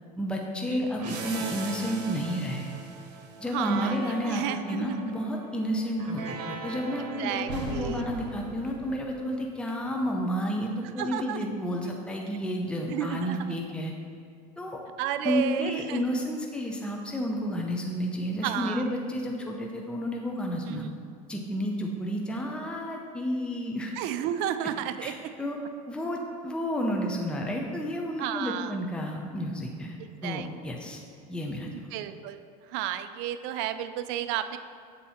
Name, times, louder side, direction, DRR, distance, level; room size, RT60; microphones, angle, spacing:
voice 1, 0.2-2.7 3.4-13.9 14.6-14.8 15.2-20.8 21.3-23.9 25.0-25.6 25.9-31.0 31.3-31.7, equal, 5° left, 0 dB, 0.7 m, -31 dB
sound 1, 1.0-9.5, right 3 dB, 85° right, 1.0 m, -39 dB
voice 2, 3.5-3.9 4.2-5.0 6.3-6.4 7.2-8.0 11.0-11.5 12.9-13.5 15.0-16.2 18.4-18.8 20.7-21.0 24.0-25.1 28.2-28.7 30.0-30.5 31.7-32.4 32.7-34.6, right 11 dB, 60° right, 11 dB, 0.4 m, -32 dB
7.5 x 4.1 x 4.3 m, 2.2 s
supercardioid pair, 105°, 21 cm